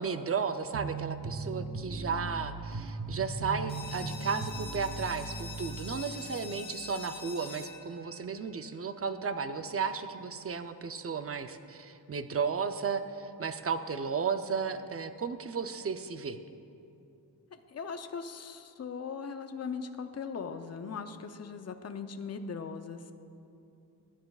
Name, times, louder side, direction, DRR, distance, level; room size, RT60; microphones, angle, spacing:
voice 1, 0.0-16.4, right 5 dB, 35° right, 9 dB, 0.5 m, -34 dB
sound 1, 0.7-6.1, right 3 dB, 65° right, 1.1 m, -38 dB
sound 2, 3.7-9.1, left 3 dB, 15° left, 2.5 m, -46 dB
voice 2, 17.7-23.1, left 5 dB, 40° left, 8 dB, 0.6 m, -39 dB
18.0 x 10.0 x 2.4 m, 2.6 s
wide cardioid pair, 90°, 39 cm